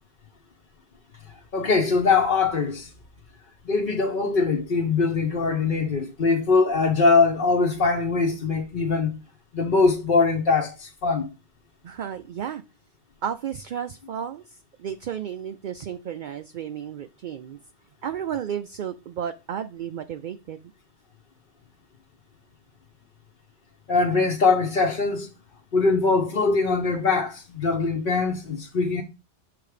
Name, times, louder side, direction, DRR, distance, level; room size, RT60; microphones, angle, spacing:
voice 1, 1.5-2.9 3.6-9.1 9.5-11.3 23.9-25.3 25.7-29.0, left 4 dB, 50° left, 1.0 m, -22 dB
voice 2, 11.8-12.6 13.2-17.6 18.0-20.6, right 9 dB, 60° right, 0.5 m, -33 dB
6.7 x 3.5 x 4.9 m
omnidirectional pair, 1.2 m